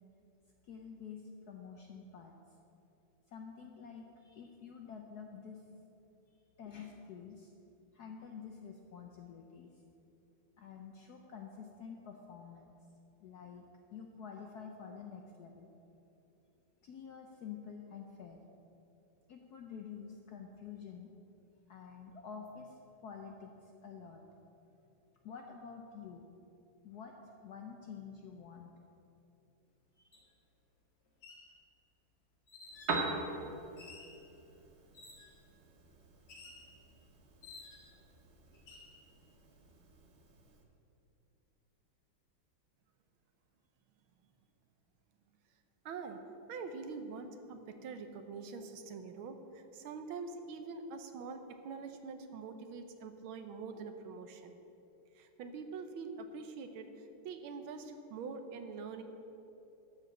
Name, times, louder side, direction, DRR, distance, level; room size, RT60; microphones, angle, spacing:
voice 1, 0.6-2.3 3.3-5.7 6.3-7.5 7.9-9.8 10.6-12.7 13.2-13.6 13.9-15.7 16.8-18.4 19.3-21.1 21.7-24.2 25.2-26.3 26.8-27.1 27.4-28.7 30.0-30.2, left 6 dB, 70° left, 2 dB, 0.9 m, -49 dB
sound 1, 30.1-30.2 31.1-31.5 32.5-33.0 33.8-34.2 34.9-35.4 36.3-36.7 37.4-38.0 38.5-38.9, left 3 dB, 85° left, 2.9 m, -53 dB
Piano, 32.6-40.6, right 3 dB, 45° right, 0.9 m, -43 dB
voice 2, 45.8-46.2 46.5-54.6 55.1-59.0, right 4 dB, 75° right, 7 dB, 1.5 m, -45 dB
12.5 x 4.9 x 7.7 m, 2.9 s
omnidirectional pair, 2.4 m